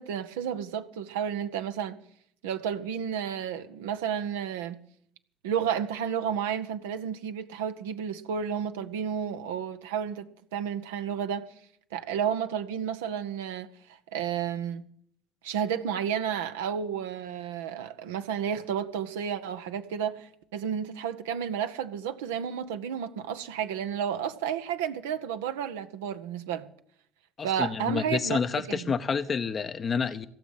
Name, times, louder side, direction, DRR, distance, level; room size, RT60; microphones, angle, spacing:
voice 1, 0.0-2.0 2.4-4.8 5.4-11.5 11.9-13.7 14.1-14.9 15.4-26.7 27.4-28.4 28.7-28.9, right 8 dB, 75° right, 0.8 m, -31 dB
voice 2, 27.4-30.3, left 6 dB, 40° left, 0.7 m, -29 dB
16.5 x 7.3 x 9.0 m
figure-of-eight pair, 55°, 0 cm